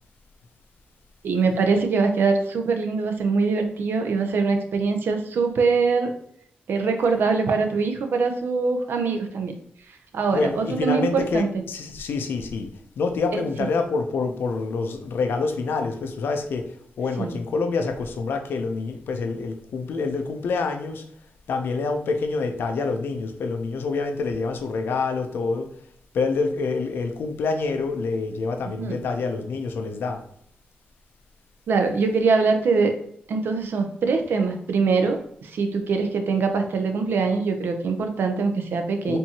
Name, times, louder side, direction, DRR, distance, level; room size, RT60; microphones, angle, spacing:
voice 1, 1.2-6.1 6.7-9.5 9.9-11.5 13.3-13.7 17.2-17.3 28.6-29.0 31.7-32.9 33.3-39.2, right 4 dB, 70° right, 0.6 m, -23 dB
voice 2, 10.3-21.0 21.5-25.7 26.1-30.2 39.1-39.2, left 4 dB, 75° left, 0.6 m, -27 dB
4.5 x 2.7 x 2.8 m
cardioid pair, 90°, 4 cm